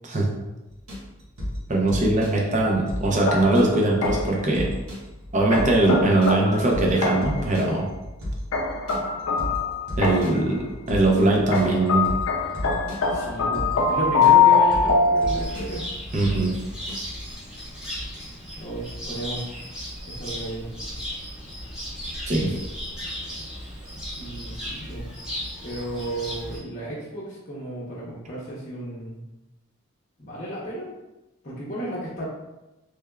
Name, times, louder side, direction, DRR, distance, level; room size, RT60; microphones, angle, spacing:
sound 1, 0.7-16.9, equal, 80° right, 1.3 m, -34 dB
voice 1, 1.7-4.7 5.3-7.8 10.0-10.6 10.9-12.1 16.1-16.5 22.3-22.6, right 2 dB, 35° right, -1 dB, 0.6 m, -21 dB
sound 2, 3.3-4.5 5.5-7.5 8.5-10.5 11.5-15.8, left 5 dB, 80° left, 0.4 m, -23 dB
voice 2, 13.1-15.8 18.6-19.5 20.0-20.7 24.2-25.1 25.6-29.2 30.2-30.9 31.4-32.3, right 1 dB, 35° left, -7 dB, 0.7 m, -33 dB
Cricket, 15.3-26.6, equal, 5° right, 1.0 m, -36 dB
3.4 x 3.3 x 2.3 m, 1.0 s
head